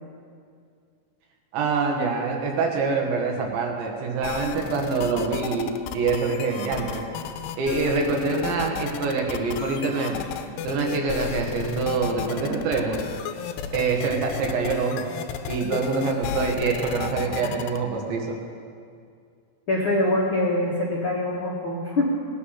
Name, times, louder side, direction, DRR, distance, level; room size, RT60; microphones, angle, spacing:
voice 1, 1.5-7.1 7.6-10.2 10.6-13.1 13.7-15.1 15.5-18.4, right 4 dB, 75° right, 1 dB, 3.8 m, -25 dB
sound 1, 4.2-17.8, left 8 dB, 85° left, 2.6 m, -33 dB
voice 2, 19.7-22.1, left 1 dB, 55° left, -7 dB, 1.4 m, -24 dB
18.0 x 9.5 x 5.8 m, 2.2 s
omnidirectional pair, 5.3 m